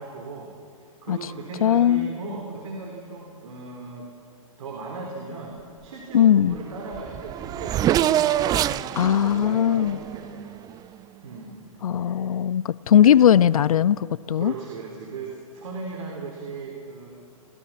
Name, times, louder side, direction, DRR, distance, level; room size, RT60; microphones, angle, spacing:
voice 1, 0.0-4.1 4.6-10.5 11.2-11.6 11.9-12.3 13.0-13.2 14.4-17.1, right 4 dB, 70° right, 3.9 m, -37 dB
voice 2, 1.6-2.1 6.1-6.6 9.0-10.0 11.8-14.5, left 10 dB, 80° left, 0.5 m, -19 dB
Race car auto racing / Accelerating revving vroom, 6.6-6.7 6.9-10.9, right 11 dB, 20° right, 0.5 m, -26 dB
25.0 x 19.5 x 5.9 m
hypercardioid pair, 120°, 18 cm